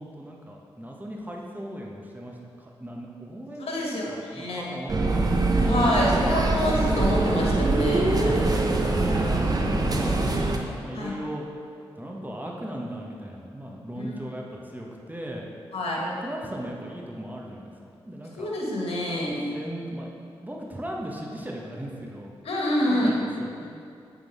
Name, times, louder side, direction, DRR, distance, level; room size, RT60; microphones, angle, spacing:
voice 1, 0.0-6.4 8.4-11.5 11.9-15.4 16.0-17.7 18.0-18.5 19.2-20.1 20.4-22.3 22.9-23.7, right 1 dB, 15° right, -1 dB, 1.3 m, -37 dB
voice 2, 3.6-4.6 5.6-8.5 10.9-11.1 13.7-14.0 15.7-16.0 18.4-19.4 22.4-23.1, left 1 dB, 70° left, -3 dB, 1.7 m, -27 dB
sound 1, 4.9-10.6, right 2 dB, 35° right, 0.9 m, -23 dB
8.9 x 3.9 x 4.9 m, 2.4 s
supercardioid pair, 40°, 10 cm